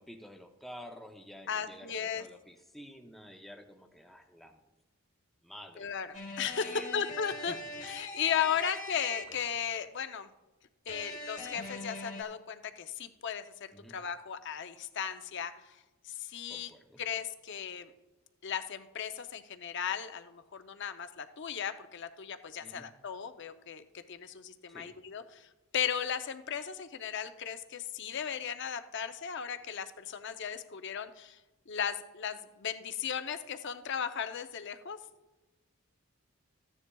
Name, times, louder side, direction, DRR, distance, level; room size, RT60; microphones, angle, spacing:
voice 1, 0.0-4.6 5.4-5.9 6.5-6.9 7.4-7.6 13.7-13.9 16.5-17.0 22.6-22.9 24.7-25.0, equal, ahead, 3 dB, 0.6 m, -50 dB
voice 2, 1.5-2.3 5.8-7.6 7.8-10.3 10.9-15.8 16.0-16.7 17.0-17.9 18.4-25.5 25.7-31.4 31.7-35.0, left 8 dB, 55° left, 9 dB, 0.6 m, -36 dB
sound 1, 6.1-9.6 10.9-12.2, left 2 dB, 35° left, 1.3 m, -42 dB
14.5 x 9.8 x 2.3 m, 1.1 s
head